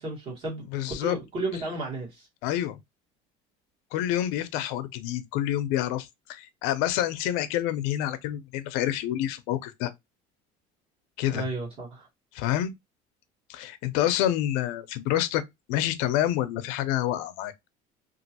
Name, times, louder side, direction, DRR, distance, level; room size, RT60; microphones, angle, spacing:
voice 1, 0.0-0.6 1.0-2.3 11.3-12.1, right 2 dB, 35° right, 1.6 m, -33 dB
voice 2, 0.7-1.2 2.4-2.8 3.9-9.9 11.2-11.5 12.3-12.7 13.5-15.4 15.7-17.7, left 12 dB, 80° left, 0.5 m, -28 dB
2.9 x 2.5 x 2.8 m
cardioid pair, 165°, 16 cm